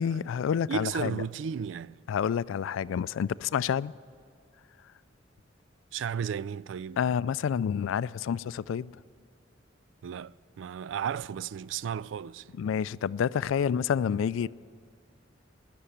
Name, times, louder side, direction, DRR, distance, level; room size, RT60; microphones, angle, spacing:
voice 1, 0.0-1.1 2.1-3.9 7.0-8.9 12.6-14.5, left 7 dB, 90° left, 0.3 m, -28 dB
voice 2, 0.7-2.0 5.9-7.0 10.0-12.5, right 7 dB, 75° right, 0.3 m, -34 dB
20.0 x 6.9 x 9.9 m
head